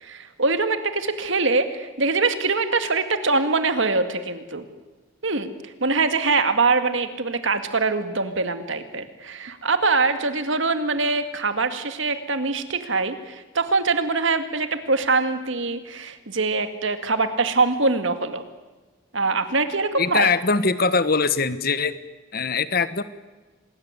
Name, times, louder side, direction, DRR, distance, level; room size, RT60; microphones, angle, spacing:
voice 1, 0.0-4.6 5.2-18.4 19.1-20.3, right 3 dB, 65° right, 9 dB, 2.1 m, -23 dB
voice 2, 20.0-21.9 22.3-23.0, left 4 dB, 45° left, 14 dB, 1.3 m, -22 dB
27.0 x 20.0 x 9.8 m, 1.2 s
head